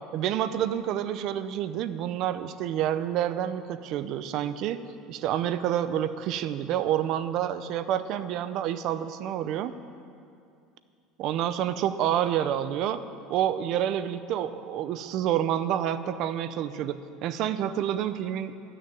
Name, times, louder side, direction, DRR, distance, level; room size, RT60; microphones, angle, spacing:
voice 1, 0.1-4.8 5.1-9.7 11.2-13.0 13.3-18.5, right 10 dB, 45° right, 12 dB, 0.5 m, -28 dB
12.0 x 6.6 x 8.9 m, 2.5 s
cardioid pair, 160°, 0 cm